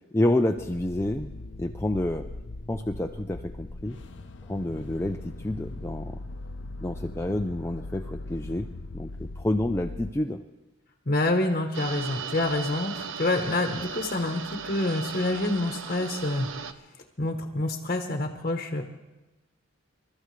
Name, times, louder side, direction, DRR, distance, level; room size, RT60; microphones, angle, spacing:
voice 1, 0.1-1.3 1.6-2.3 2.7-4.0 4.4-6.2 6.8-8.7 8.9-10.4, left 1 dB, 15° left, 4 dB, 0.4 m, -28 dB
sound 1, 0.6-10.1, left 2 dB, 65° left, 0.7 m, -40 dB
voice 2, 11.1-16.5 17.2-18.8, left 2 dB, 40° left, 4 dB, 1.0 m, -27 dB
sound 2, 11.7-16.7, right 6 dB, 85° right, 0.8 m, -37 dB
27.5 x 13.5 x 3.3 m, 1.1 s
head